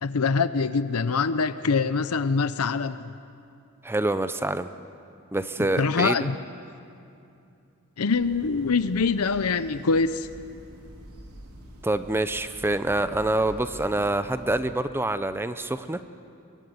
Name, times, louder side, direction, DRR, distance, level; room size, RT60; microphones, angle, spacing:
voice 1, 0.0-3.0 5.8-6.3 8.0-10.3, left 4 dB, 80° left, 13 dB, 0.7 m, -24 dB
voice 2, 3.8-4.7 5.3-6.3 11.8-16.0, right 2 dB, 10° right, 11 dB, 0.6 m, -26 dB
sound 1, 8.1-14.7, equal, 90° right, 3.4 m, -46 dB
23.0 x 23.0 x 9.4 m, 2.6 s
head